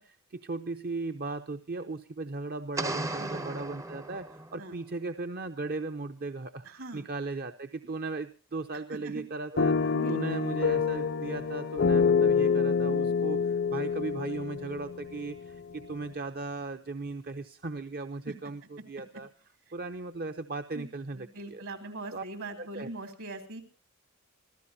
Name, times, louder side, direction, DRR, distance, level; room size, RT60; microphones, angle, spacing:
voice 1, 0.0-19.3 19.7-21.6 22.1-22.2 22.6-22.9, right 3 dB, 45° right, 8 dB, 0.8 m, -37 dB
sound 1, 2.8-4.7, right 2 dB, 15° right, 0.6 m, -36 dB
voice 2, 3.1-3.7 4.6-4.8 6.6-7.0 8.7-9.2 9.9-10.4 18.3-18.4 19.1-19.2 20.7-20.9 21.1-23.6, right 2 dB, 70° right, 7 dB, 3.5 m, -41 dB
sound 2, 9.6-15.6, left 5 dB, 60° left, 0.7 m, -27 dB
26.0 x 15.5 x 2.8 m, 0.35 s
head